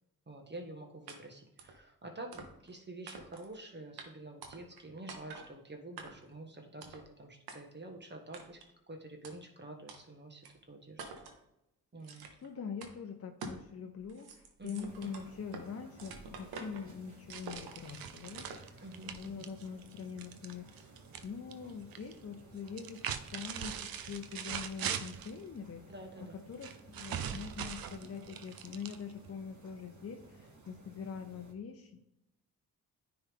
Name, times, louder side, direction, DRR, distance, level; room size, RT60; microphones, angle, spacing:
voice 1, 0.3-8.6 8.9-11.0 11.9-12.3 14.6-15.3 18.8-19.6 25.9-26.4, right 2 dB, 30° right, 2 dB, 1.5 m, -48 dB
sound 1, 1.1-1.2 1.6-1.8 2.3-2.7 3.1-3.5 4.0-4.1 4.4-4.8 5.1-5.5 6.0-6.3 6.8-7.1 7.5-7.6 8.3-8.7 9.2-9.3 9.9-10.0 10.4-10.5 11.0-11.4 12.0-12.5 12.8-12.9 13.4-13.7 14.0-15.7 16.0-16.9 17.3-17.9 18.4-18.7, right 4 dB, 90° right, 1.0 m, -47 dB
voice 2, 12.0-23.0 23.3-25.9 26.2-32.0, left 6 dB, 40° left, 4 dB, 0.7 m, -44 dB
sound 2, 14.8-31.5, right 2 dB, 50° right, 1.5 m, -57 dB
sound 3, 17.3-21.3 21.5-22.1 22.7-25.4 26.6-29.3, right 8 dB, 70° right, 0.6 m, -41 dB
9.7 x 3.5 x 3.6 m, 0.85 s
supercardioid pair, 55°, 37 cm